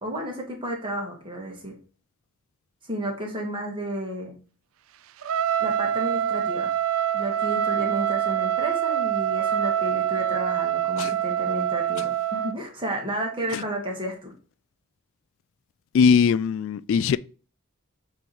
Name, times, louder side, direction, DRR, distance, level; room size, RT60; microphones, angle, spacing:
voice 1, 0.0-1.7 2.9-4.3 5.6-6.7 7.1-14.3, right 1 dB, 25° right, 1.8 m, -32 dB
Trumpet, 5.2-12.6, right 10 dB, 75° right, 0.4 m, -25 dB
voice 2, 15.9-17.2, left 6 dB, 65° left, 0.3 m, -20 dB
8.2 x 3.2 x 4.2 m
head